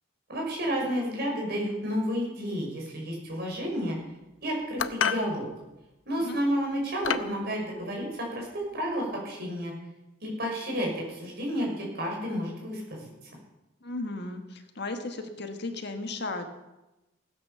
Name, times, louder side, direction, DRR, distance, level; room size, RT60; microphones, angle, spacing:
voice 1, 0.3-4.0 4.4-5.5 6.1-9.7 10.2-13.1, equal, 55° right, -1 dB, 6.1 m, -31 dB
sound 1, 4.8-5.3 6.2-6.4 7.0-7.4, left 7 dB, 80° left, 0.7 m, -28 dB
voice 2, 13.8-16.5, left 2 dB, 60° left, 6 dB, 1.6 m, -35 dB
16.5 x 10.0 x 6.9 m, 1.0 s
head